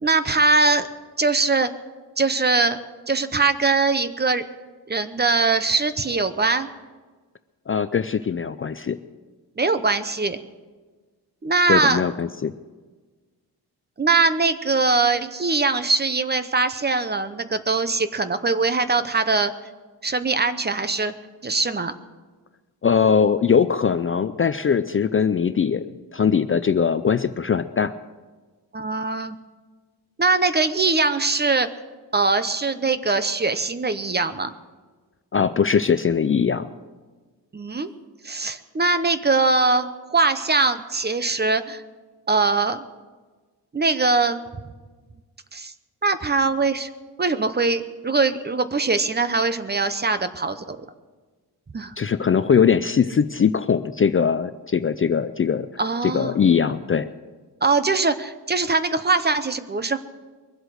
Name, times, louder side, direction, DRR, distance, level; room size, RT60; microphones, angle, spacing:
voice 1, 0.0-0.9 1.2-1.7 2.2-2.8 3.1-4.4 4.9-6.7 9.6-10.4 11.4-12.0 14.0-19.5 20.0-21.1 21.4-21.9 28.7-29.4 30.2-31.7 32.1-34.5 37.5-37.9 38.2-41.8 42.3-42.8 43.7-44.4 45.5-45.7 46.0-46.9 47.2-50.8 51.7-51.9 55.8-56.4 57.6-60.0, right 3 dB, 25° right, 11 dB, 0.7 m, -21 dB
voice 2, 7.7-9.0 11.7-12.5 22.8-27.9 35.3-36.7 52.0-55.7 56.0-57.1, left 6 dB, 35° left, 12 dB, 0.4 m, -21 dB
22.5 x 8.0 x 6.4 m, 1.4 s
wide cardioid pair, 130°, 40 cm